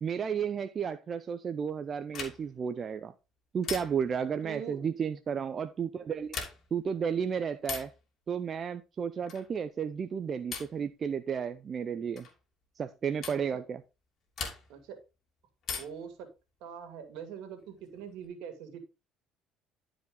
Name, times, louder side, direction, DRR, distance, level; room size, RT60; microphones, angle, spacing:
voice 1, 0.0-3.1 3.5-6.4 6.7-7.9 8.3-12.3 12.8-13.8, right 7 dB, 40° right, 0.6 m, -33 dB
sound 1, 2.1-2.6 3.6-4.2 6.2-6.8 7.6-8.0 9.3-9.6 10.5-10.9 12.2-12.4 13.2-13.5 14.4-14.9 15.6-16.1 17.6-18.3, left 5 dB, 50° left, 2.7 m, -40 dB
voice 2, 4.4-4.8 13.3-13.6 14.7-15.0 15.7-16.3 16.6-18.8, right 8 dB, 75° right, 2.3 m, -43 dB
11.0 x 5.0 x 3.8 m
supercardioid pair, 80°, 0 cm